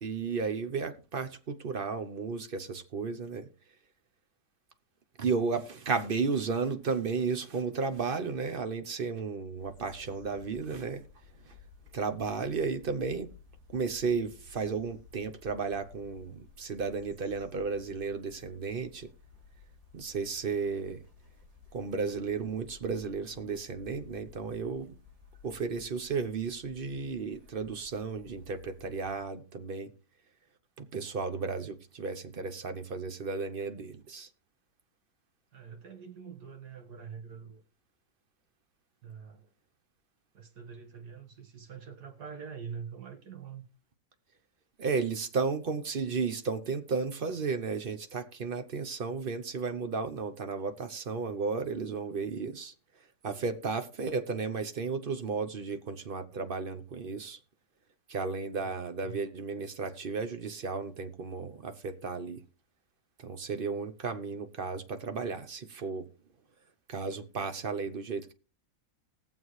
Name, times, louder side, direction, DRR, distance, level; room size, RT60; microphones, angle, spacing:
voice 1, 0.0-3.5 5.2-11.0 11.5-11.6 11.9-13.3 13.7-19.1 19.9-21.0 21.7-24.9 25.4-29.9 30.8-34.3 44.8-52.7 53.2-57.4 58.1-62.4 63.2-66.1 66.9-68.3, right 5 dB, 45° right, 0.7 m, -34 dB
sound 1, 9.6-29.2, left 5 dB, 20° right, 3.1 m, -56 dB
voice 2, 35.5-37.6 39.0-39.5 40.3-43.6 58.5-59.2, right 6 dB, 60° right, 1.9 m, -45 dB
20.0 x 7.3 x 3.2 m
omnidirectional pair, 2.0 m